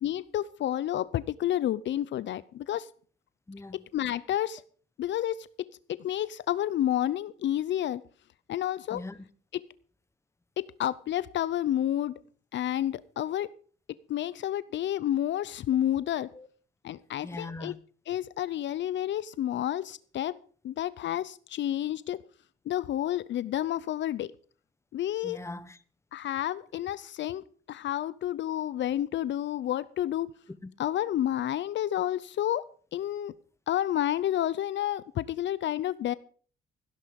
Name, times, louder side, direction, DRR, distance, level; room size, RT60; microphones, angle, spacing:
voice 1, 0.0-2.9 3.9-4.6 5.0-5.5 5.9-8.0 8.5-9.0 10.6-12.1 12.5-13.5 14.1-16.3 16.8-17.7 18.1-20.4 20.6-22.2 22.7-24.3 24.9-25.4 26.1-30.3 30.8-32.6 32.9-33.3 33.7-36.1, left 12 dB, 65° left, 0.7 m, -30 dB
voice 2, 3.5-3.8 8.9-9.3 16.3-16.5 17.2-17.8 25.2-25.8, left 2 dB, 15° left, 1.2 m, -41 dB
16.5 x 11.0 x 5.3 m
cardioid pair, 90°, 20 cm